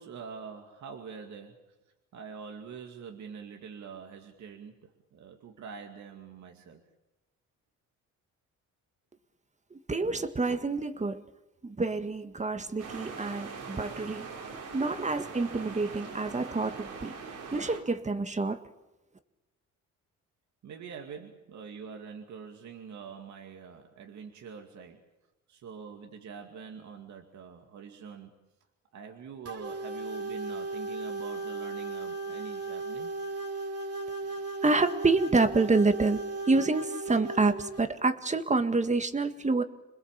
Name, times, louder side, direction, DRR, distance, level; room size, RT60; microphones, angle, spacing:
voice 1, 0.0-1.8 2.1-6.8 20.6-25.0 25.5-28.4 28.9-33.1, right 6 dB, 70° right, 3 dB, 2.5 m, -45 dB
voice 2, 9.7-11.2 11.6-14.3 14.7-17.1 17.5-18.6 34.6-36.2 36.5-39.6, right 3 dB, 25° right, 9 dB, 1.8 m, -27 dB
sound 1, 12.8-17.8, right 5 dB, 85° right, 4.4 m, -42 dB
sound 2, 29.5-37.8, right 3 dB, 50° right, 2.8 m, -36 dB
27.0 x 20.5 x 7.4 m, 1.0 s
cardioid pair, 90°, 30 cm